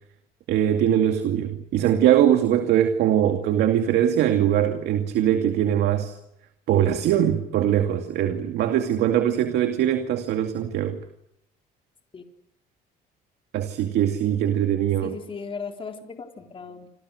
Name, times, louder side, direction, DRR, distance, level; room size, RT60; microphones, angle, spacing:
voice 1, 0.5-6.1 6.7-11.0 13.5-15.2, right 10 dB, 75° right, 6 dB, 2.4 m, -22 dB
voice 2, 15.0-16.9, left 5 dB, 30° left, 4 dB, 3.8 m, -37 dB
29.0 x 28.0 x 6.6 m, 0.81 s
cardioid pair, 110°, 17 cm